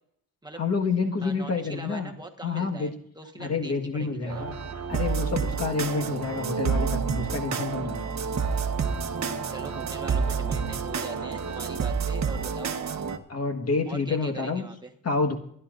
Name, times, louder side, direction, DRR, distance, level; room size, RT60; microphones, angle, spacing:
voice 1, 0.6-2.1 2.4-2.9 3.4-4.5 4.9-8.1 13.3-14.6 15.0-15.4, left 4 dB, 40° left, 4 dB, 1.5 m, -28 dB
voice 2, 1.2-4.5 9.5-12.7 13.9-14.9, right 2 dB, 10° right, 2 dB, 1.2 m, -42 dB
sound 1, 4.3-13.2, right 5 dB, 45° right, 1.1 m, -29 dB
28.0 x 11.0 x 2.5 m, 0.69 s
cardioid pair, 125°, 37 cm